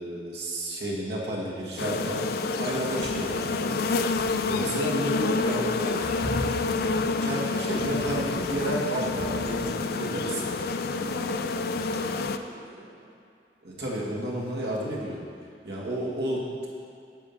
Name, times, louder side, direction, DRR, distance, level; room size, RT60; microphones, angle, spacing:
voice 1, 0.0-2.2 2.6-3.8 4.4-5.9 7.2-10.5 13.6-15.2 15.6-16.7, right 1 dB, 70° right, -5 dB, 1.7 m, -31 dB
sound 1, 1.8-12.4, left 3 dB, 55° left, 0.3 m, -28 dB
voice 2, 2.2-2.5 5.1-6.3 10.9-13.1, equal, 50° right, -8 dB, 1.6 m, -41 dB
sound 2, 3.0-3.7 4.0-4.7 5.6-5.7 6.6-7.3 7.7-10.0, equal, 30° right, 1.0 m, -44 dB
sound 3, 5.6-6.8, equal, 5° left, 1.9 m, -36 dB
9.8 x 3.6 x 7.1 m, 2.5 s
head